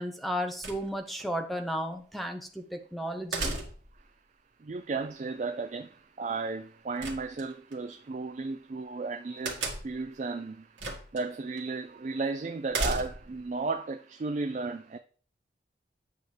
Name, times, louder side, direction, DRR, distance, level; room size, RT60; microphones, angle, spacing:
voice 1, 0.0-3.6, equal, ahead, 0.7 m, -34 dB
sound 1, 0.6-1.2 3.3-4.0 7.0-7.8 9.4-10.1 10.8-11.2 11.6-11.7 12.7-13.4, right 2 dB, 85° right, 1.7 m, -34 dB
voice 2, 4.6-10.8 11.1-15.0, right 3 dB, 40° right, 0.4 m, -34 dB
8.4 x 6.0 x 3.3 m
head